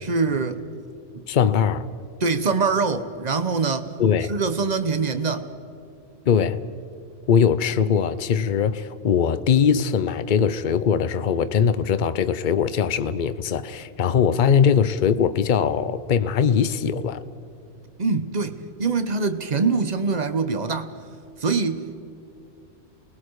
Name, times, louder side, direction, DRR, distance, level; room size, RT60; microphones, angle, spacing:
voice 1, 0.0-0.6 2.2-3.9 4.3-5.5 18.0-20.9 21.4-22.0, right 4 dB, 40° right, 1.1 m, -24 dB
voice 2, 1.3-1.9 4.0-4.3 6.3-6.6 7.3-17.2, left 7 dB, 50° left, 0.8 m, -21 dB
29.0 x 20.5 x 4.8 m
omnidirectional pair, 1.2 m